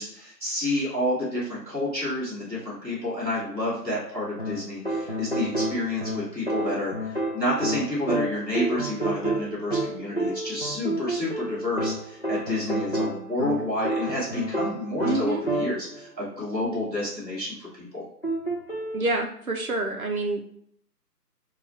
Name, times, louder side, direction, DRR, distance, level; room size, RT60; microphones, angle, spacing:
voice 1, 0.0-18.0, left 1 dB, 5° left, -20 dB, 1.0 m, -29 dB
sound 1, 4.4-16.0 18.2-19.1, right 1 dB, 40° left, 0.4 m, -29 dB
voice 2, 15.0-15.4 18.9-20.4, right 2 dB, 60° right, 3 dB, 0.6 m, -27 dB
3.6 x 2.3 x 4.2 m, 0.67 s
figure-of-eight pair, 155°, 49 cm